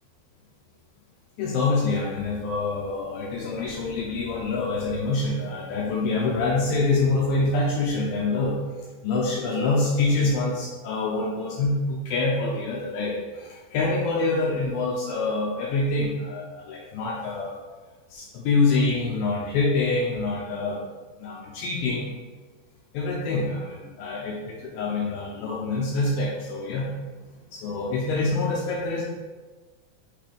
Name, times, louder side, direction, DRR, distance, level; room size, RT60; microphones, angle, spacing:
voice 1, 1.4-8.6 9.0-17.6 18.1-20.8 21.2-22.1 22.9-27.0 27.5-29.0, left 3 dB, 80° left, -3 dB, 2.4 m, -26 dB
6.7 x 3.3 x 5.2 m, 1.3 s
omnidirectional pair, 4.4 m